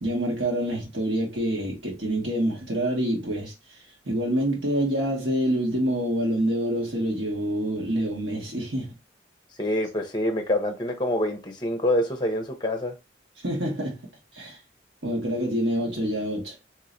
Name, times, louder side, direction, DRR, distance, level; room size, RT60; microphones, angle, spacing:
voice 1, 0.0-3.5 4.0-8.9 13.4-14.1 14.3-14.6 15.0-16.5, right 1 dB, 75° right, 1.5 m, -26 dB
voice 2, 9.6-13.0, left 1 dB, 25° left, 0.7 m, -26 dB
3.0 x 3.0 x 2.6 m
head